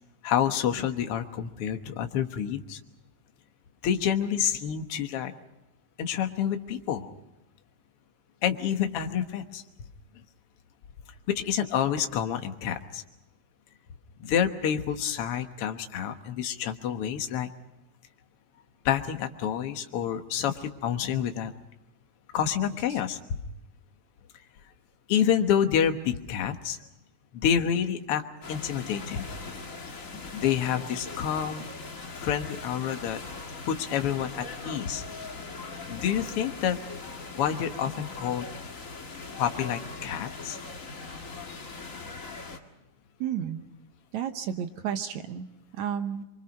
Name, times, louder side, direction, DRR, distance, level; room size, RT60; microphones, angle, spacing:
voice 1, 0.2-2.8 3.8-5.3 6.0-7.1 8.4-9.6 11.3-13.0 14.2-17.5 18.8-21.5 22.3-23.4 25.1-26.8 27.3-28.2 28.5-29.3 30.3-31.7 32.2-33.2 33.7-35.0 35.9-36.8 37.3-38.5 39.4-40.6, left 9 dB, 55° left, 6 dB, 1.8 m, -28 dB
sound 1, 28.4-42.6, left 4 dB, 30° left, 1.7 m, -40 dB
voice 2, 43.2-43.6 44.1-45.5 45.7-46.2, right 9 dB, 65° right, 8 dB, 2.1 m, -31 dB
26.5 x 24.0 x 5.3 m, 0.93 s
omnidirectional pair, 3.9 m